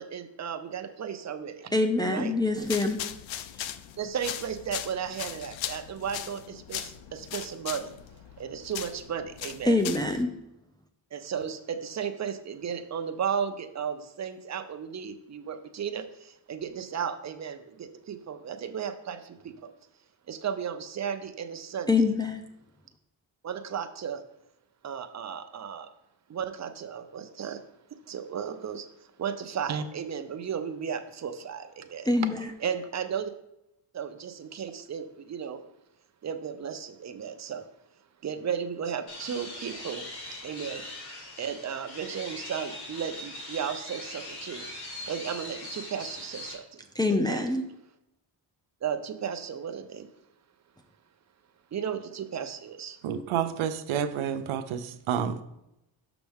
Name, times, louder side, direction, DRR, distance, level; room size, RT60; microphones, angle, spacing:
voice 1, 0.0-1.7 2.0-2.3 4.0-7.9 8.4-9.8 11.1-19.7 20.3-21.9 23.4-24.2 24.8-25.9 26.3-27.6 27.9-28.9 29.2-32.1 32.6-33.3 33.9-35.6 36.2-37.7 38.2-40.1 40.4-40.8 41.4-44.7 45.1-46.8 47.1-47.4 48.8-50.1 51.7-53.0, right 7 dB, 35° right, 8 dB, 0.7 m, -34 dB
voice 2, 1.7-3.0 9.6-10.3 21.9-22.4 32.1-32.5 47.0-47.6, left 2 dB, 10° left, 3 dB, 0.5 m, -25 dB
sound 1, 2.6-10.2, left 11 dB, 70° left, 0.6 m, -39 dB
sound 2, 39.1-46.5, left 1 dB, 50° left, 2.1 m, -41 dB
voice 3, 53.0-55.4, right 8 dB, 80° right, 10 dB, 0.7 m, -29 dB
6.3 x 6.0 x 3.5 m, 0.85 s
cardioid pair, 110°, 48 cm